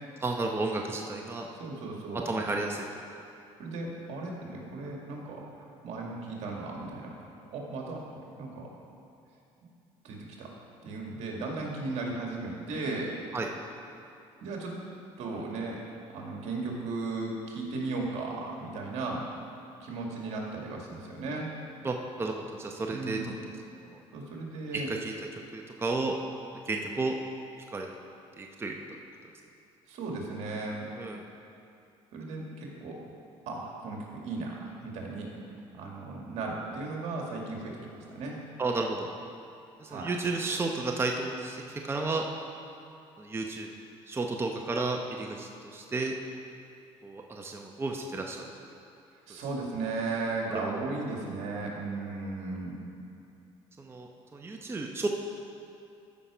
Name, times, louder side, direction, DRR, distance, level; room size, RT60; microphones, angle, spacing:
voice 1, 0.2-1.5 2.2-2.9 13.3-13.5 21.8-23.4 23.8-24.0 24.7-25.1 25.5-26.2 26.7-27.2 27.7-27.9 28.4-28.8 31.0-31.2 38.6-39.1 39.8-42.3 43.2-43.7 44.1-46.1 47.0-48.5 50.6-50.7 53.8-55.1, right 3 dB, 20° right, 2 dB, 0.8 m, -32 dB
voice 2, 1.5-2.3 3.6-7.1 7.5-8.7 10.0-10.5 10.8-13.1 14.4-14.7 15.2-15.8 16.1-19.2 19.8-21.5 22.9-23.3 24.1-24.9 29.9-30.9 32.1-33.0 33.5-38.4 39.9-40.1 49.3-52.8, right 3 dB, 70° right, -1 dB, 2.0 m, -36 dB
13.5 x 5.8 x 5.0 m, 2.6 s
cardioid pair, 95°, 12 cm